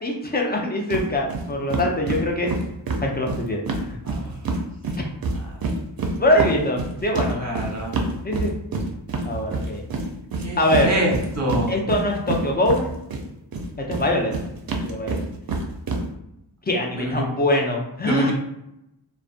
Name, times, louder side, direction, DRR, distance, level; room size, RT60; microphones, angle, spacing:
voice 1, 0.0-2.5 3.0-3.6 6.2-7.4 8.2-8.5 9.2-9.8 10.6-10.9 11.7-12.9 13.8-14.3 14.8-15.2 16.7-18.3, left 1 dB, 20° left, 0 dB, 0.5 m, -23 dB
sound 1, 0.9-1.0 1.3-1.4 1.7-4.6 4.8-13.2 13.5-16.0, right 3 dB, 50° right, 0.5 m, -26 dB
voice 2, 7.3-7.9 10.4-11.7 16.9-17.2 18.0-18.3, right 1 dB, 35° right, -3 dB, 0.9 m, -26 dB
2.4 x 2.2 x 2.4 m, 0.84 s
cardioid pair, 40°, 46 cm